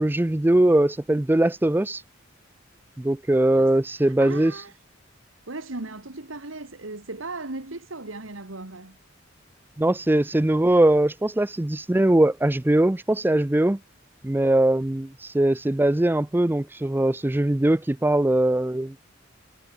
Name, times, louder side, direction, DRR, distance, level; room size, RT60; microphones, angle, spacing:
voice 1, 0.0-2.0 3.0-4.5 9.8-13.8 14.2-19.0, right 1 dB, 10° right, 0.4 m, -21 dB
voice 2, 3.5-4.8 5.5-9.0, right 2 dB, 80° right, 2.1 m, -37 dB
head